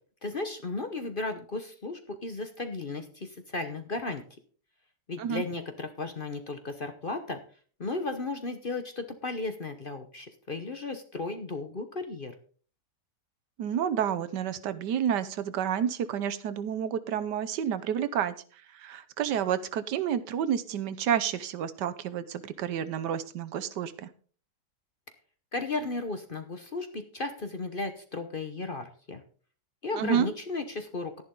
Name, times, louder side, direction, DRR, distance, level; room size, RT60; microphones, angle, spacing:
voice 1, 0.2-4.2 5.1-7.4 7.8-12.3 25.5-29.2 29.8-31.2, left 3 dB, 40° left, 7 dB, 0.9 m, -35 dB
voice 2, 13.6-18.3 18.7-24.1 29.9-30.3, right 9 dB, 75° right, 13 dB, 1.4 m, -30 dB
11.5 x 10.5 x 3.8 m, 0.42 s
omnidirectional pair, 1.9 m